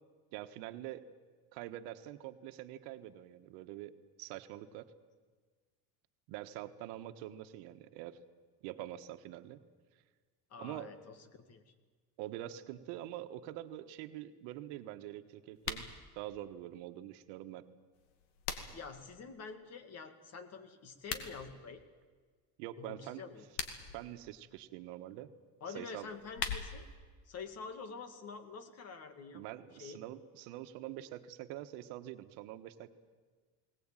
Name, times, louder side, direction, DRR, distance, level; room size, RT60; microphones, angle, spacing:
voice 1, 0.3-1.1 1.5-4.9 6.3-8.2 8.6-9.6 10.6-10.9 12.2-15.9 16.1-17.7 22.6-23.2 23.9-25.3 25.7-26.1 29.3-32.9, right 13 dB, 80° right, 9 dB, 1.4 m, -45 dB
voice 2, 10.5-11.7 18.7-21.8 22.8-23.4 25.6-26.9 27.3-29.4 29.8-30.0, left 5 dB, 40° left, 10 dB, 2.1 m, -47 dB
sound 1, 15.5-15.9 17.9-18.9 20.9-21.3 23.3-24.0 26.0-26.9, left 7 dB, 75° left, 2.5 m, -40 dB
21.0 x 19.0 x 9.0 m, 1.5 s
cardioid pair, 140°, 40 cm